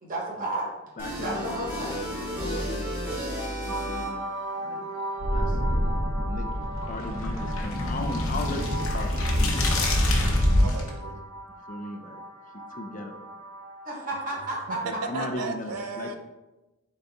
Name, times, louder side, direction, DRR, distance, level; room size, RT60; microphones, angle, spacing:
voice 1, 0.0-0.7 1.2-2.1 13.8-14.8 15.1-15.2, right 2 dB, 40° right, -3 dB, 1.2 m, -32 dB
voice 2, 1.0-1.5 2.4-2.9 3.7-4.3 4.6-4.8 5.3-5.6 6.1-9.4 11.7-12.2 12.7-13.2 14.8-16.1, left 2 dB, 35° left, 5 dB, 0.5 m, -37 dB
sound 1, 1.0-4.4, equal, 10° right, 1.0 m, -33 dB
sound 2, 3.7-15.3, right 1 dB, 70° right, 0.9 m, -38 dB
sound 3, 5.2-10.9, left 1 dB, 65° left, 0.9 m, -25 dB
voice 3, 10.2-11.3 14.7-16.1, right 4 dB, 85° right, 7 dB, 0.5 m, -36 dB
4.1 x 3.8 x 3.5 m, 1.0 s
head